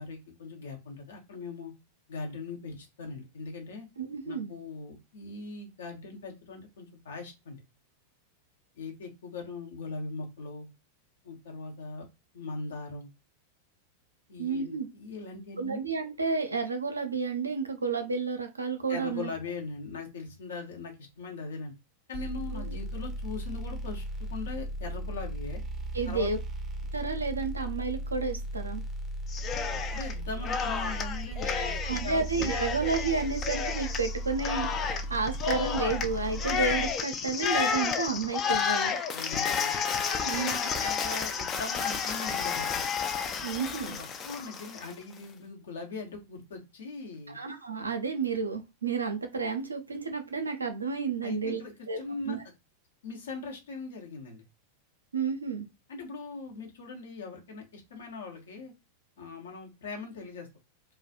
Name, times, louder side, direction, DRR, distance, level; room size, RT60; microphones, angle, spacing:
voice 1, 0.0-1.7 2.1-3.9 4.2-7.6 8.7-10.7 11.2-12.1 12.3-13.1 14.3-15.8 18.9-21.7 22.1-24.0 24.3-25.6 26.1-26.3 29.7-32.2 39.1-39.7 40.2-42.8 44.0-47.4 51.2-52.4 53.0-54.4 55.9-58.7 59.2-60.5, left 4 dB, 65° left, 1 dB, 0.7 m, -40 dB
voice 2, 4.0-4.5 14.4-14.9 15.6-19.3 22.5-22.8 25.9-26.4 26.9-28.8 31.6-39.0 40.2-40.5 43.4-44.0 47.3-52.0 52.3-52.4 55.1-55.7, right 4 dB, 80° right, 6 dB, 0.4 m, -31 dB
sound 1, 22.1-36.9, right 1 dB, 15° right, 0.6 m, -36 dB
Cheering, 29.3-30.1 30.4-44.9, left 6 dB, 30° left, 0.3 m, -31 dB
2.3 x 2.0 x 2.6 m, 0.25 s
figure-of-eight pair, 90°, 0 cm